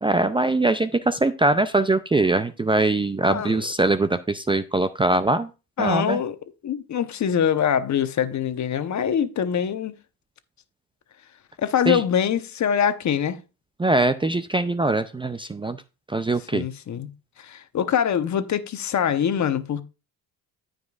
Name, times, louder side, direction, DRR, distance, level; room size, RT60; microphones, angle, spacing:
voice 1, 0.0-5.5 5.8-6.2 11.9-12.0 13.8-15.8 16.1-16.7, right 2 dB, 15° right, 0.5 m, -22 dB
voice 2, 3.3-3.7 5.8-6.4 6.6-9.9 11.6-13.4 16.5-17.1 17.4-19.8, left 8 dB, 50° left, 1.0 m, -24 dB
14.5 x 5.3 x 2.4 m
supercardioid pair, 85°, 38 cm